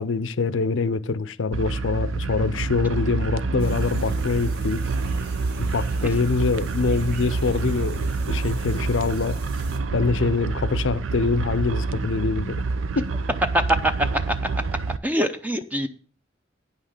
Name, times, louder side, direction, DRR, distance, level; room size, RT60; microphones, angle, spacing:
voice 1, 0.0-4.8 5.6-8.0 8.3-9.4 9.9-12.6 13.0-13.1, left 4 dB, 70° left, 0.6 m, -24 dB
sound 1, 1.5-15.0, right 3 dB, 90° right, 0.6 m, -27 dB
sound 2, 3.6-9.8, right 3 dB, 55° right, 1.5 m, -42 dB
voice 2, 15.0-15.9, equal, 10° right, 0.6 m, -24 dB
9.6 x 5.8 x 6.5 m
head